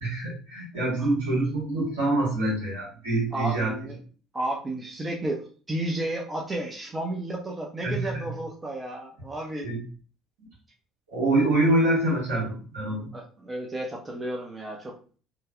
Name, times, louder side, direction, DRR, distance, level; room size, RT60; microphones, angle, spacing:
voice 1, 0.0-3.7 7.8-8.3 9.6-9.8 11.1-13.1, right 2 dB, 80° right, -6 dB, 1.4 m, -25 dB
voice 2, 0.7-1.1 3.3-4.0 4.3-9.7 13.1-14.9, right 1 dB, 25° right, -1 dB, 0.7 m, -32 dB
3.1 x 2.3 x 2.3 m, 0.39 s
hypercardioid pair, 60°, 0 cm